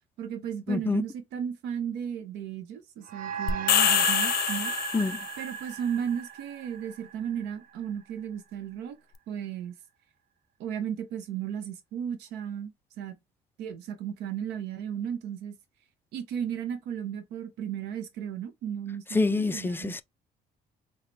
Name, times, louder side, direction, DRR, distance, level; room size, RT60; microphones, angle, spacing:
voice 1, 0.2-4.7 5.4-9.0 9.3-9.7 10.6-13.2 13.6-15.6 16.1-19.9, right 8 dB, 85° right, 0.8 m, -35 dB
voice 2, 0.7-1.0 4.9-5.2 19.1-20.0, left 3 dB, 15° left, 0.3 m, -26 dB
sound 1, 3.1-7.8, right 9 dB, 60° right, 0.5 m, -35 dB
sound 2, 3.5-5.4, left 12 dB, 65° left, 0.5 m, -25 dB
4.0 x 2.1 x 3.3 m
cardioid pair, 110°, 17 cm